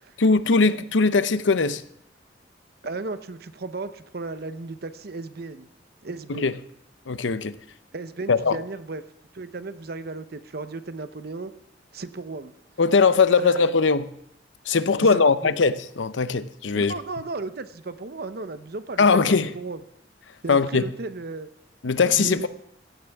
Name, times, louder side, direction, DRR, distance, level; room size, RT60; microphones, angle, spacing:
voice 1, 0.2-1.8 6.3-6.5 7.1-7.5 8.3-8.6 12.8-14.1 14.7-16.9 19.0-19.5 20.5-20.9 21.8-22.5, left 4 dB, 90° left, 0.7 m, -20 dB
voice 2, 2.8-5.7 6.0-6.5 7.9-9.0 9.3-11.5 11.9-12.5 13.4-13.7 15.1-15.5 16.7-19.2 19.5-19.8 20.4-21.5 22.1-22.5, right 3 dB, 55° right, 0.8 m, -35 dB
16.0 x 15.5 x 3.5 m
head